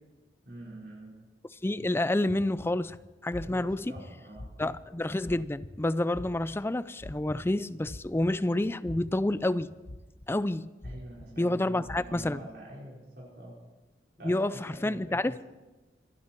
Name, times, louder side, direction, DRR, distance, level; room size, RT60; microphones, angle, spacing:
voice 1, 0.4-1.1 3.4-4.4 10.8-13.5 14.2-15.3, right 1 dB, 65° right, 4.8 m, -46 dB
voice 2, 1.6-3.0 3.2-3.9 4.6-9.7 10.3-10.7 11.4-12.4 14.2-15.5, left 1 dB, 15° left, 0.4 m, -29 dB
sound 1, 2.3-2.4 2.9-3.0 3.9-4.0 4.6-4.7 5.6-5.7 6.3-6.4 7.3-7.4 7.9-8.0 8.9-9.0 9.6-9.7, left 2 dB, 30° left, 1.1 m, -45 dB
sound 2, 2.6-2.8 3.3-3.8 4.3-4.8 5.2-5.7 6.1-6.6 7.0-7.4 7.8-8.5 8.8-9.3 9.8-10.3 10.8-11.3 11.8-12.3, left 1 dB, 60° left, 1.1 m, -43 dB
26.5 x 10.5 x 4.5 m
head